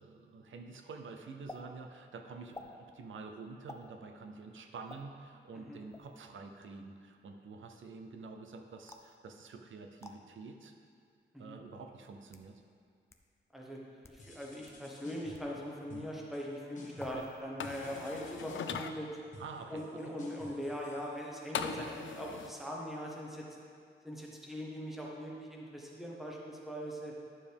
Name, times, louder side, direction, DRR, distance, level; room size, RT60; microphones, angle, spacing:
voice 1, 0.0-10.8 11.4-12.6 15.9-16.1 17.1-17.3 19.4-20.0 21.8-21.9, right 4 dB, 90° right, 5 dB, 0.7 m, -48 dB
sound 1, 1.5-1.6 2.5-2.7 3.7-3.9 4.9-5.0 5.9-6.2 8.9-9.2 10.0-10.2 11.1-11.2 12.0-12.5 13.1-13.2 13.9-14.2 14.7-14.8 15.3-15.5 17.0-17.4 17.7-18.1, left 2 dB, 15° left, 0.4 m, -50 dB
voice 2, 13.5-19.1 19.7-23.5 24.0-27.1, equal, ahead, -3 dB, 1.1 m, -41 dB
sound 2, 14.2-15.5 15.9-16.5 16.7-17.3 17.6-21.6, left 1 dB, 40° left, 1.6 m, -54 dB
sound 3, 17.6-18.9 21.5-22.5, left 7 dB, 85° left, 0.4 m, -39 dB
11.0 x 7.0 x 3.5 m, 2.2 s
wide cardioid pair, 175°, 20 cm